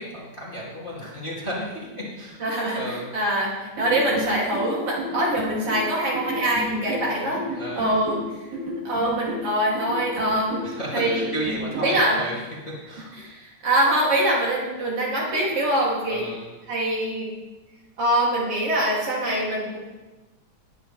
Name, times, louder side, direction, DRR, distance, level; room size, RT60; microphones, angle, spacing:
voice 1, 0.0-2.4 2.7-3.1 7.0-7.2 7.5-7.9 10.6-12.4 12.7-13.1 16.1-16.5, equal, 20° left, -6 dB, 2.3 m, -33 dB
voice 2, 2.4-7.5 7.7-8.2 8.9-11.3 11.8-12.2 13.1-16.3 16.7-17.3 18.0-19.8, right 1 dB, 50° right, -5 dB, 3.6 m, -24 dB
sound 1, 3.8-12.0, equal, 85° right, 3.8 m, -32 dB
20.0 x 9.5 x 3.3 m, 1.1 s
omnidirectional pair, 3.4 m